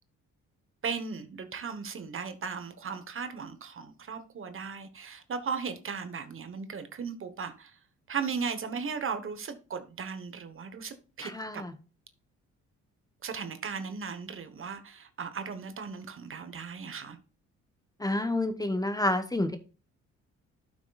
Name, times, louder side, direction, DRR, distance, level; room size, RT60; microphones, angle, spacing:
voice 1, 0.8-7.7 8.1-11.6 13.2-17.2, right 5 dB, 45° right, 1.2 m, -37 dB
voice 2, 11.2-11.7 18.0-19.6, left 1 dB, 10° left, 0.9 m, -29 dB
11.5 x 6.1 x 2.4 m
cardioid pair, 90°, 30 cm